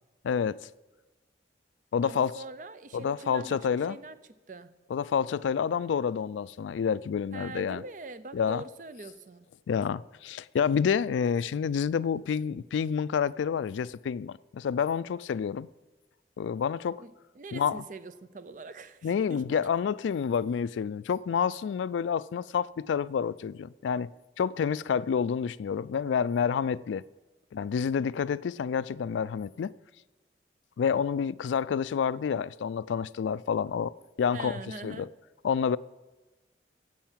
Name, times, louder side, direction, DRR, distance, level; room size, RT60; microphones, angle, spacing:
voice 1, 0.2-0.6 1.9-2.3 2.9-4.0 4.9-7.8 8.3-8.6 9.7-15.7 16.4-17.0 17.5-17.8 19.0-24.1 24.4-27.0 27.5-29.7 30.8-35.1 35.4-35.8, left 7 dB, 90° left, 0.3 m, -28 dB
voice 2, 2.0-4.2 4.5-4.7 7.3-9.5 17.0-19.7 34.3-35.1, right 3 dB, 45° right, 0.5 m, -43 dB
10.5 x 7.8 x 7.3 m
head